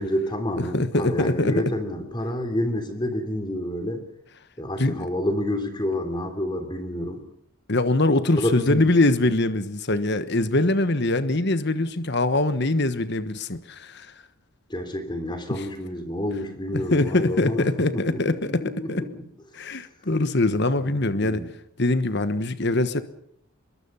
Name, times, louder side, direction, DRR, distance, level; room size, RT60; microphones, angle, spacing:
voice 1, 0.0-4.0 4.6-7.2 8.3-8.9 14.7-19.3 19.7-19.9 20.8-21.5, left 1 dB, 20° left, 7 dB, 3.3 m, -29 dB
voice 2, 0.7-1.5 4.8-5.0 7.7-14.1 16.7-18.6 18.9-19.0 19.5-21.4 21.8-23.0, left 2 dB, 50° left, 12 dB, 1.3 m, -23 dB
24.5 x 22.5 x 5.6 m, 0.71 s
head